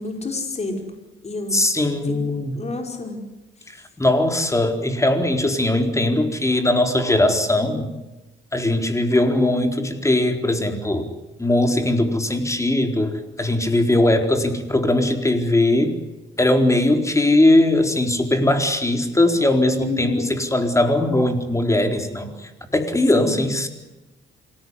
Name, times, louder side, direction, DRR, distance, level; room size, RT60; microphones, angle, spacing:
voice 1, 0.0-1.6 2.6-3.2 19.8-20.4 23.1-23.4, left 3 dB, 35° left, 3 dB, 5.3 m, -29 dB
voice 2, 1.5-2.6 3.7-7.9 8.5-11.1 11.4-16.0 16.4-23.7, left 1 dB, 15° left, 6 dB, 4.3 m, -20 dB
27.0 x 18.5 x 9.8 m, 1.0 s
cardioid pair, 90°, 20 cm